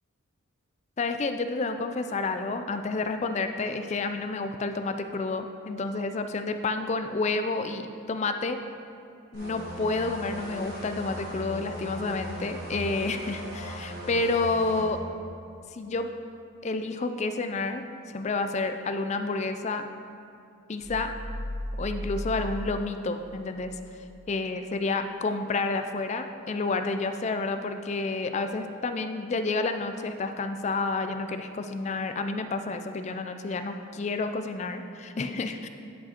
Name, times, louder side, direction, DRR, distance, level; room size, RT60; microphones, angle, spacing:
voice 1, 1.0-8.6 9.3-15.0 15.7-16.1 16.6-19.8 20.7-21.1 21.8-23.8 24.3-35.7, left 3 dB, 30° left, 8 dB, 0.3 m, -30 dB
sound 1, 9.3-14.9, equal, 45° right, 1.6 m, -38 dB
sound 2, 20.8-23.8, equal, 30° right, 1.3 m, -36 dB
10.0 x 5.0 x 4.3 m, 2.5 s
head